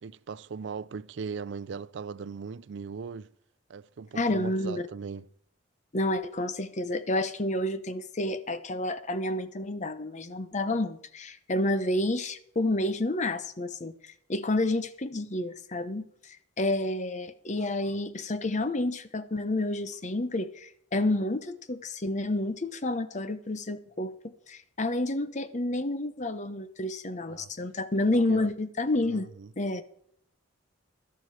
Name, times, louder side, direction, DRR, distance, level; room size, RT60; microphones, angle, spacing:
voice 1, 0.0-3.3 3.7-5.3 27.3-27.5 28.3-28.5 29.0-29.5, right 5 dB, 65° right, 0.4 m, -39 dB
voice 2, 4.1-4.9 5.9-29.3 29.6-29.8, left 1 dB, 35° left, 0.9 m, -30 dB
12.5 x 11.0 x 4.8 m
head